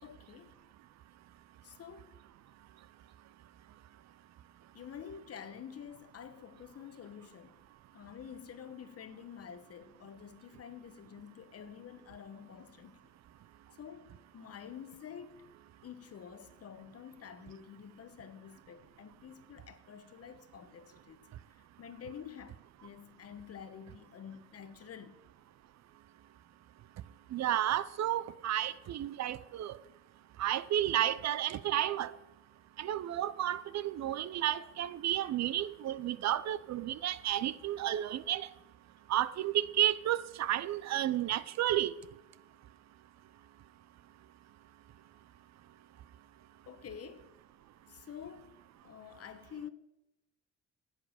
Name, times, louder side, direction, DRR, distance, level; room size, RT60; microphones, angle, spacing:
voice 1, 0.0-0.6 1.6-2.1 4.7-7.6 7.9-13.1 13.8-15.5 15.8-21.3 21.6-25.2 27.3-27.4 46.7-47.3 47.9-48.6 48.8-49.7, left 8 dB, 55° left, 1.1 m, -49 dB
voice 2, 27.3-29.8 30.4-32.1 32.8-38.5 39.1-41.9, right 12 dB, 60° right, 0.6 m, -32 dB
10.5 x 8.0 x 6.4 m
cardioid pair, 90°, 30 cm